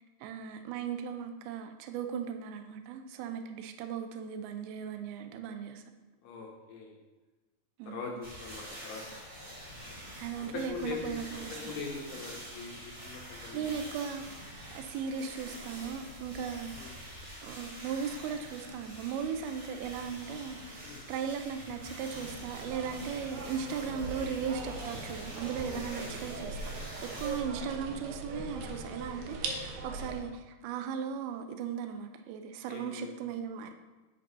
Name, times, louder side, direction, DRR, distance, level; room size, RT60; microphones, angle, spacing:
voice 1, 0.2-5.8 7.8-8.1 10.2-11.7 13.5-14.3 14.7-16.9 17.4-26.6 27.0-33.7, right 7 dB, 90° right, 6 dB, 2.2 m, -37 dB
voice 2, 6.2-7.0 7.8-9.0 10.4-13.7 16.8-17.0 20.8-21.1 25.6-26.2 32.7-33.1, left 5 dB, 75° left, 0 dB, 2.4 m, -42 dB
sound 1, 8.2-27.4, equal, 30° right, 1.3 m, -46 dB
sound 2, 22.1-30.2, right 3 dB, 75° right, 2.2 m, -41 dB
9.1 x 8.1 x 2.7 m, 1.2 s
omnidirectional pair, 5.1 m